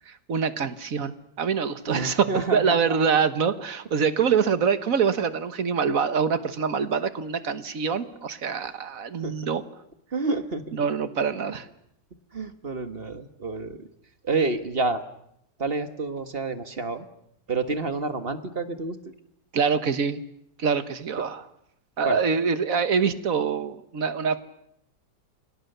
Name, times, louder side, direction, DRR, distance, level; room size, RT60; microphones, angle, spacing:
voice 1, 0.1-9.6 10.7-11.7 19.5-20.2 20.6-21.4 22.0-24.4, right 6 dB, 55° right, 12 dB, 1.7 m, -25 dB
voice 2, 1.9-3.0 8.6-8.7 9.2-9.4 10.1-10.8 12.3-13.9 14.2-15.0 15.6-17.1 17.5-19.0 22.0-22.2, right 3 dB, 35° right, 9 dB, 1.6 m, -29 dB
29.0 x 24.5 x 6.8 m, 0.76 s
omnidirectional pair, 1.9 m